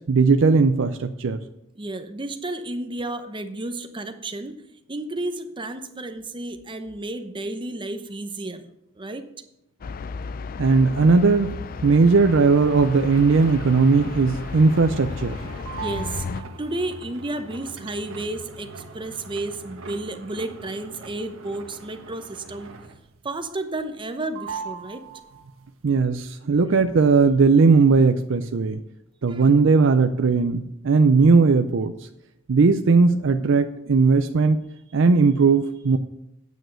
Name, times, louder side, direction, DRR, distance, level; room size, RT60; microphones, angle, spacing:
voice 1, 0.1-1.4 10.6-11.5 11.8-15.4 25.8-28.8 29.2-32.1 32.5-34.6 34.9-36.0, right 4 dB, 65° right, 8 dB, 0.5 m, -18 dB
voice 2, 1.8-4.6 4.9-9.2 15.8-22.7 23.2-25.0 29.3-29.5, right 2 dB, 25° right, 8 dB, 0.9 m, -32 dB
sound 1, 9.8-16.4, left 5 dB, 45° left, 0.4 m, -34 dB
sound 2, 11.7-23.2 23.5-24.1 24.3-25.7, right 4 dB, 90° right, 1.2 m, -40 dB
9.2 x 6.2 x 7.8 m, 0.83 s
head